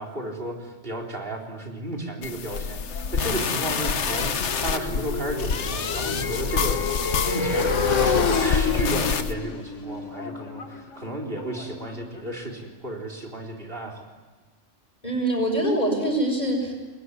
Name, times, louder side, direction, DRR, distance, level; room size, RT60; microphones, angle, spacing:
voice 1, 0.0-14.1, right 1 dB, 50° right, 3 dB, 4.1 m, -33 dB
sound 1, 2.2-9.3, left 6 dB, 70° left, 1.4 m, -27 dB
Motorcycle, 2.5-12.4, left 5 dB, 90° left, 1.8 m, -29 dB
voice 2, 15.0-16.7, right 1 dB, 35° left, 2 dB, 7.1 m, -24 dB
28.0 x 21.5 x 9.8 m, 1.3 s
omnidirectional pair, 1.2 m